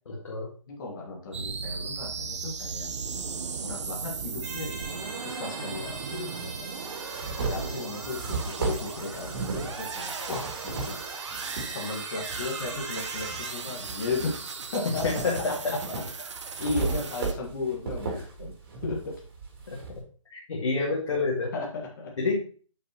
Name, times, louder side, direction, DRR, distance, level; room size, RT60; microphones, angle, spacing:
voice 1, 0.1-0.5 14.8-15.7 19.7-19.8 20.3-21.5 22.2-22.4, left 3 dB, 60° left, -3 dB, 1.9 m, -28 dB
voice 2, 0.7-2.9 3.6-6.7 7.4-11.0 11.7-15.0 16.6-18.5 18.8-19.1 21.5-22.1, left 3 dB, 35° left, -2 dB, 1.6 m, -35 dB
sound 1, 1.3-17.3, right 5 dB, 60° right, 1.0 m, -37 dB
sound 2, 4.4-13.6, right 4 dB, 15° right, 0.8 m, -41 dB
sound 3, 4.8-4.9 6.0-6.1 6.6-11.7 12.2-13.4 13.8-20.0, right 4 dB, 40° right, 2.9 m, -35 dB
8.2 x 5.8 x 2.9 m, 0.41 s
hypercardioid pair, 165°, 17 cm